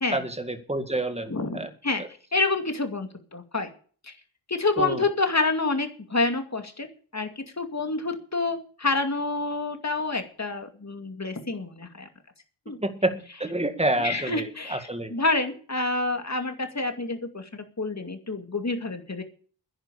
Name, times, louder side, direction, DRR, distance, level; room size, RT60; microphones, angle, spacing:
voice 1, 0.1-1.7 2.0-2.1 4.8-5.0 12.8-15.1, right 1 dB, 15° right, 8 dB, 1.9 m, -28 dB
voice 2, 1.3-2.0 2.3-3.7 4.0-4.1 4.5-6.9 7.1-12.1 12.7-12.8 14.0-19.2, left 3 dB, 35° left, 6 dB, 2.4 m, -28 dB
10.5 x 10.0 x 8.4 m, 0.42 s
wide cardioid pair, 100°, 45 cm